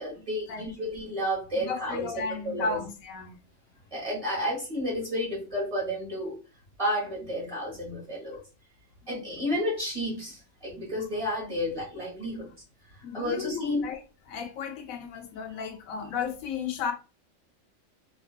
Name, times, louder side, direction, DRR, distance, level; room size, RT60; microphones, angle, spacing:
voice 1, 0.0-2.0 2.4-2.8 3.9-6.3 6.8-8.4 9.1-12.5 13.1-13.8, equal, 25° right, 1.0 m, -31 dB
voice 2, 1.5-3.4 9.0-9.2 13.0-14.0 14.3-16.9, left 5 dB, 85° left, 1.0 m, -34 dB
2.6 x 2.4 x 2.2 m
omnidirectional pair, 1.4 m